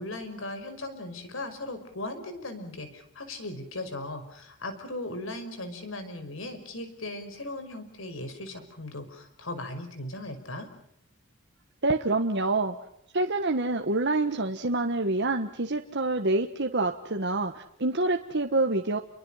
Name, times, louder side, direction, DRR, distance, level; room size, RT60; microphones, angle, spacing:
voice 1, 0.0-10.7, left 2 dB, 65° left, 9 dB, 5.7 m, -38 dB
voice 2, 11.8-12.8 13.1-19.0, right 2 dB, 55° right, 4 dB, 1.5 m, -27 dB
30.0 x 23.5 x 5.8 m, 0.72 s
head